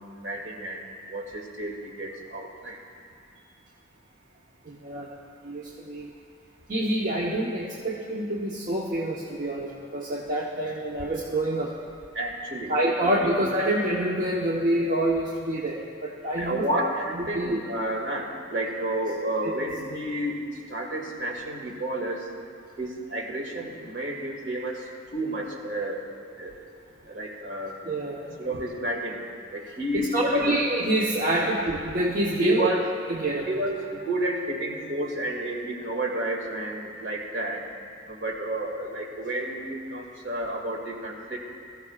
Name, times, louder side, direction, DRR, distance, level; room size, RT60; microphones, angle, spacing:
voice 1, 0.0-2.8 12.1-12.7 13.2-13.3 16.3-22.3 22.8-26.1 26.4-26.6 27.1-27.8 28.4-29.2 29.5-30.5 31.4-31.5 32.4-32.8 33.5-37.7 38.1-41.4, right 1 dB, 60° right, -1 dB, 2.2 m, -31 dB
voice 2, 4.6-5.1 5.4-6.1 6.7-11.7 12.7-16.9 17.1-17.6 27.8-28.4 29.9-32.7 33.1-33.5, right 1 dB, 45° right, -4 dB, 1.1 m, -27 dB
21.5 x 14.5 x 2.4 m, 2.3 s
head